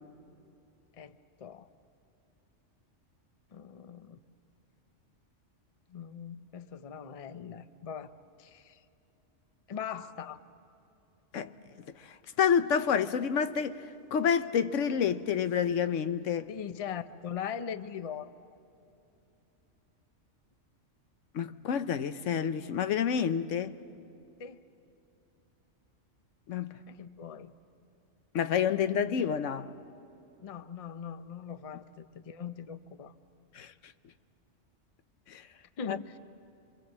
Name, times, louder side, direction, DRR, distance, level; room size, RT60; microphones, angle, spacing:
voice 1, 1.0-1.7 3.5-4.2 5.9-8.1 8.4-8.8 9.7-10.4 16.5-18.6 24.4-24.7 26.9-27.5 30.4-33.1 35.8-36.2, left 7 dB, 35° left, 0.6 m, -41 dB
voice 2, 11.9-16.5 21.3-23.8 26.5-26.8 28.3-29.7 33.5-33.7 35.3-35.5 35.9-36.0, left 7 dB, 85° left, 1.1 m, -29 dB
27.0 x 24.5 x 7.4 m
omnidirectional pair, 1.3 m